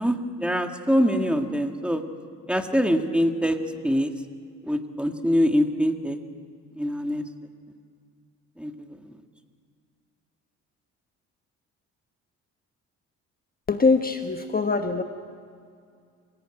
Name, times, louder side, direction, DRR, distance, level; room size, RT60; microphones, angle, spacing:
voice 1, 0.0-2.0 2.5-3.6 3.8-4.1 4.7-6.2 6.8-7.2 8.6-8.7, equal, 5° right, 5 dB, 1.9 m, -24 dB
voice 2, 13.7-15.0, left 4 dB, 30° left, 6 dB, 1.3 m, -23 dB
26.5 x 17.0 x 9.0 m, 2.2 s
cardioid pair, 90°, 30 cm